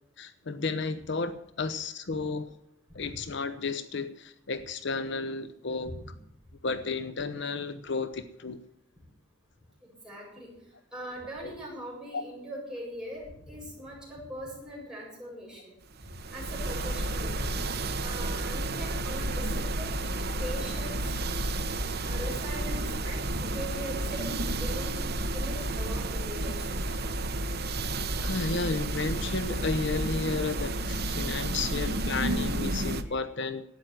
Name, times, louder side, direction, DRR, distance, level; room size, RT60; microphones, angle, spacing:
voice 1, 0.2-2.5 2.9-5.9 6.6-8.6 11.4-11.5 12.1-12.2 20.3-20.4 28.2-33.6, left 4 dB, 65° left, 12 dB, 0.8 m, -32 dB
voice 2, 9.8-10.5 10.9-15.7 16.3-17.5 18.0-20.0 20.4-21.0 22.1-25.0 25.3-26.7 33.1-33.2, equal, 5° right, -5 dB, 7.9 m, -40 dB
sound 1, 16.0-33.0, right 2 dB, 55° right, 1.0 m, -31 dB
13.0 x 9.1 x 8.9 m, 0.76 s
head